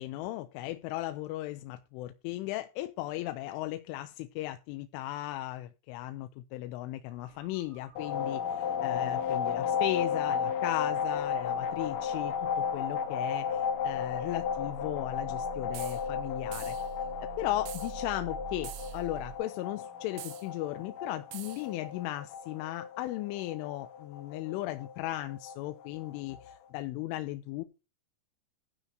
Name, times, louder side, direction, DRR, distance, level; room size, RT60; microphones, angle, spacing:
voice 1, 0.0-16.8 17.2-27.6, left 15 dB, 90° left, 9 dB, 3.2 m, -36 dB
sound 1, 7.1-19.4, right 10 dB, 45° right, 6.0 m, -49 dB
sound 2, 8.0-26.5, left 7 dB, 70° left, 2.6 m, -34 dB
sound 3, 15.7-16.0 16.5-16.9 17.7-17.9 18.6-19.0 20.2-20.5 21.3-21.7, right 13 dB, 75° right, 2.2 m, -45 dB
12.0 x 5.2 x 6.1 m, 0.29 s
omnidirectional pair, 5.5 m